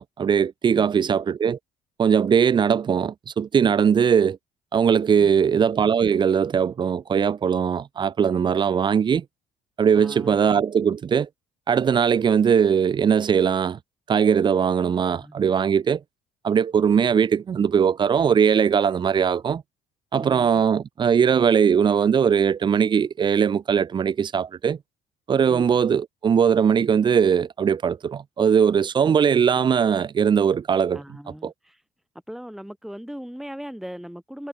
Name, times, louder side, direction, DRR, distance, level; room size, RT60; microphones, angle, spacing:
voice 1, 0.0-1.6 2.0-4.4 4.7-9.2 9.8-11.3 11.7-13.8 14.1-16.0 16.4-19.6 20.1-24.8 25.3-31.0 31.4-31.5, right 7 dB, 25° right, 0.4 m, -20 dB
voice 2, 9.9-10.5 15.1-15.4 30.9-31.8 32.3-34.5, equal, ahead, 2.4 m, -39 dB
cardioid pair, 110°, 17 cm